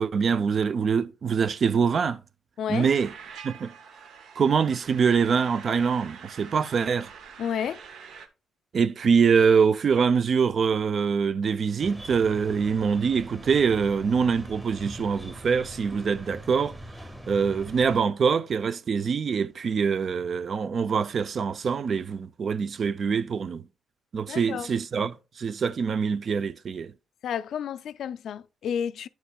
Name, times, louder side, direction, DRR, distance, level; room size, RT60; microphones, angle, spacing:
voice 1, 0.0-2.2 2.7-3.1 3.4-3.7 4.4-7.1 8.7-16.8 17.3-23.6 24.1-26.9, right 6 dB, 45° right, 0.4 m, -24 dB
voice 2, 2.6-2.9 7.4-7.8 24.3-24.7 27.2-29.1, left 8 dB, 65° left, 0.3 m, -31 dB
sound 1, 2.7-8.3, right 6 dB, 75° right, 0.8 m, -45 dB
sound 2, 11.8-18.0, equal, 15° right, 1.4 m, -42 dB
9.2 x 7.1 x 2.3 m
cardioid pair, 130°, 0 cm